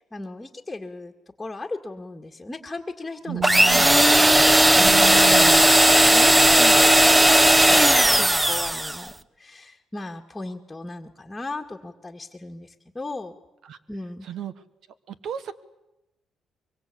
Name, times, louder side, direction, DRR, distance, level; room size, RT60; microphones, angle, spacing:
voice 1, 0.1-1.1 1.4-3.5 3.7-4.5 4.8-5.0 5.9-13.3 13.9-14.3, left 2 dB, 15° left, 1 dB, 2.0 m, -36 dB
voice 2, 3.3-4.0 4.8-5.7 13.6-13.8 14.2-14.5 15.1-15.5, right 11 dB, 70° right, 14 dB, 1.4 m, -32 dB
sound 1, 3.4-9.0, right 1 dB, 10° right, 0.9 m, -16 dB
23.5 x 23.0 x 8.5 m, 0.95 s
cardioid pair, 90°, 0 cm